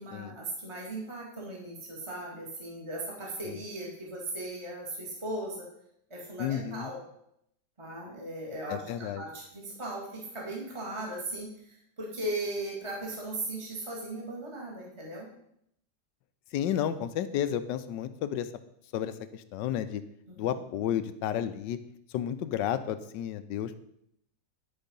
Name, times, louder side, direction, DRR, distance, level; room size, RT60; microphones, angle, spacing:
voice 1, 0.0-5.7 6.1-7.0 7.8-15.3 20.3-20.5, right 1 dB, 15° right, -2 dB, 1.9 m, -38 dB
voice 2, 6.4-6.9 8.7-9.2 16.5-18.5 18.9-20.0 20.4-21.8 22.1-23.8, left 10 dB, 85° left, 12 dB, 1.3 m, -32 dB
11.0 x 4.7 x 5.2 m, 0.73 s
omnidirectional pair, 1.9 m